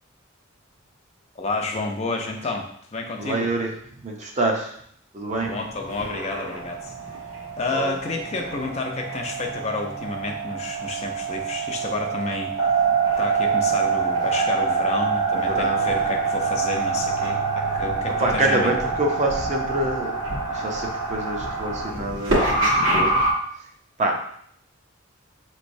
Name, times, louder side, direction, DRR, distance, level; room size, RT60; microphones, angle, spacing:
voice 1, 1.4-3.5 5.3-6.9 7.6-12.5 13.2-18.7, left 3 dB, 30° left, 2 dB, 0.4 m, -30 dB
voice 2, 3.2-3.7 4.0-4.7 5.1-5.5 7.7-7.9 15.3-15.8 18.2-20.2 20.5-23.1 24.0-24.2, right 2 dB, 35° right, 1 dB, 0.6 m, -26 dB
sound 1, 5.3-23.3, right 4 dB, 75° right, 1.3 m, -25 dB
5.3 x 3.1 x 2.6 m, 0.67 s
head